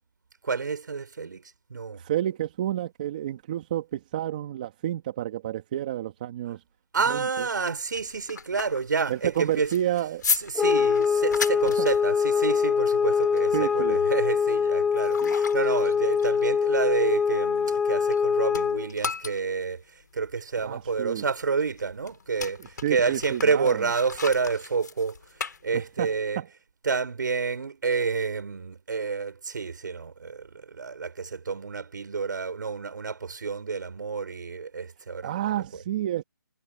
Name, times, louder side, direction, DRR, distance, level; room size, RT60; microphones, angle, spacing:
voice 1, 0.4-2.0 6.9-9.7 10.3-26.4 26.8-35.5, right 5 dB, 60° right, 6.0 m, -29 dB
voice 2, 2.0-6.6 7.1-7.5 9.1-10.2 13.5-14.0 15.2-15.4 20.6-21.2 22.8-23.8 26.0-26.1 26.4-26.5 35.2-36.2, right 12 dB, 25° right, 1.9 m, -30 dB
sound 1, 7.7-18.2 18.5-26.2, left 5 dB, 55° left, 5.8 m, -36 dB
sound 2, 10.6-18.9, left 6 dB, 5° left, 0.7 m, -24 dB
hypercardioid pair, 175°, 11 cm